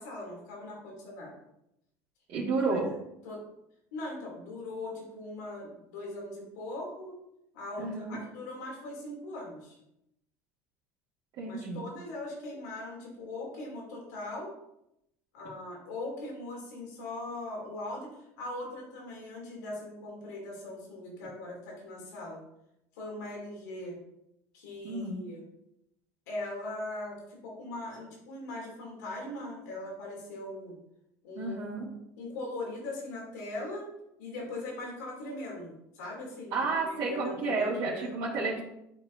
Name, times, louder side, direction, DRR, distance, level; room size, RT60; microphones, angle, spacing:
voice 1, 0.0-1.3 2.7-2.8 3.2-3.4 3.9-7.1 7.5-9.8 11.4-14.5 15.3-22.4 22.9-24.0 24.5-25.4 26.3-30.7 31.2-31.6 32.2-33.9 34.2-38.1, left 2 dB, 90° left, -3 dB, 2.9 m, -40 dB
voice 2, 2.3-2.9 7.8-8.2 11.4-11.9 24.8-25.2 31.4-31.9 36.5-38.6, right 3 dB, 60° right, -7 dB, 2.0 m, -31 dB
11.0 x 4.6 x 2.7 m, 0.81 s
supercardioid pair, 95°, 9 cm